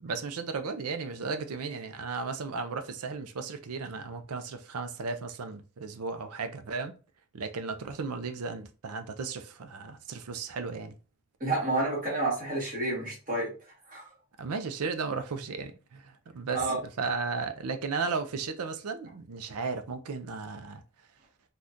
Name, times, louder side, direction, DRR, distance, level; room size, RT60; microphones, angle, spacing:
voice 1, 0.0-7.0 7.3-11.0 14.4-16.7 17.0-20.8, right 4 dB, 85° right, 0.5 m, -35 dB
voice 2, 11.4-13.5 13.9-14.0 16.5-16.8, right 2 dB, 40° right, 1.6 m, -29 dB
3.5 x 2.4 x 2.6 m
head